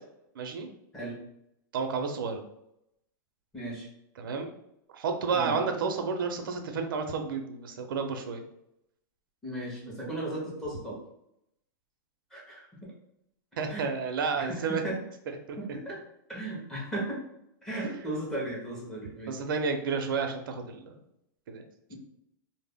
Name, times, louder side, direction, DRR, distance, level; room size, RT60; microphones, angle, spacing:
voice 1, 0.4-0.7 1.7-2.4 4.2-4.5 4.9-8.4 13.6-14.8 15.5-15.6 19.3-21.0 21.5-21.6, right 5 dB, 90° right, 5 dB, 0.5 m, -31 dB
voice 2, 3.5-3.9 5.3-5.6 9.4-11.0 12.3-12.7 13.7-13.9 14.4-15.0 15.6-16.0 16.3-17.2 17.6-19.3 21.9-22.0, right 1 dB, 5° left, -7 dB, 0.5 m, -36 dB
2.1 x 2.0 x 3.4 m, 0.80 s
supercardioid pair, 175°, 11 cm